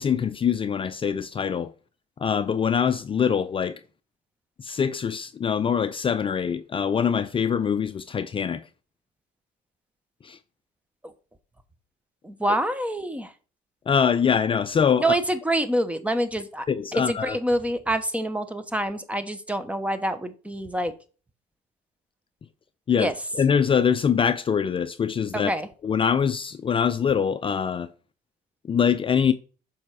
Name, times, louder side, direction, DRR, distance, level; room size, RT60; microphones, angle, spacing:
voice 1, 0.0-1.7 2.2-3.8 4.6-8.6 10.2-10.4 13.9-15.2 16.7-17.4 22.9-25.5 25.8-27.9 28.7-29.3, left 7 dB, 30° left, 0.5 m, -24 dB
voice 2, 12.2-13.3 15.0-16.7 17.1-20.9 23.0-23.1 25.3-25.7, right 1 dB, 10° right, 0.9 m, -26 dB
7.2 x 5.6 x 4.7 m
cardioid pair, 110°, 17 cm